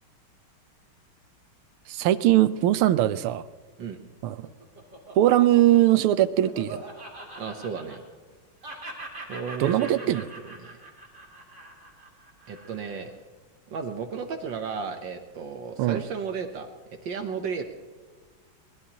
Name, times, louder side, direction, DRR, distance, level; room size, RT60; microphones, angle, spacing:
voice 1, 1.9-3.4 4.2-4.5 5.1-6.8 9.6-10.2 15.8-16.0, right 13 dB, 90° right, 14 dB, 1.6 m, -21 dB
Laughter, 4.1-8.3 8.6-13.1, right 2 dB, 35° right, 3.2 m, -42 dB
voice 2, 7.4-8.0 9.3-10.2 10.6-10.7 12.5-13.1 13.7-16.7 17.0-17.6, right 6 dB, 65° right, 6 dB, 1.6 m, -34 dB
23.5 x 20.0 x 2.9 m, 1.4 s
omnidirectional pair, 2.3 m